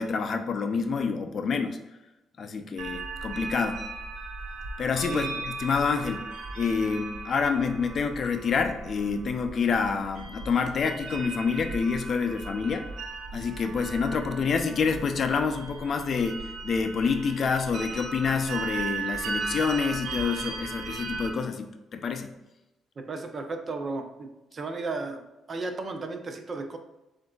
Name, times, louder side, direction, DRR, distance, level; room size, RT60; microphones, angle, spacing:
voice 1, 0.0-1.8 2.4-3.8 4.8-6.2 6.5-12.9 13.3-22.3, left 5 dB, 55° left, 7 dB, 0.5 m, -27 dB
sound 1, 2.8-21.3, right 4 dB, 80° right, 0.6 m, -37 dB
voice 2, 23.0-25.2 25.5-26.8, right 3 dB, 40° right, 5 dB, 0.6 m, -34 dB
7.5 x 2.6 x 2.3 m, 0.99 s
cardioid pair, 90°, 0 cm